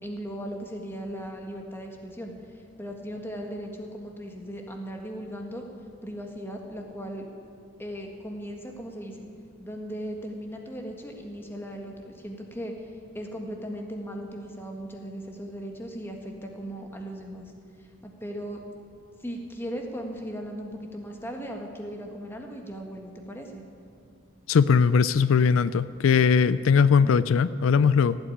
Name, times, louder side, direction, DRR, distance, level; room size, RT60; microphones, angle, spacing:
voice 1, 0.0-5.6 6.0-7.2 7.8-9.3 9.6-12.9 13.1-17.5 17.8-18.6 19.2-23.6 27.0-27.1, equal, 10° left, 2 dB, 1.6 m, -37 dB
voice 2, 24.5-28.2, left 6 dB, 80° left, 16 dB, 0.4 m, -20 dB
16.5 x 8.2 x 10.0 m, 2.3 s
head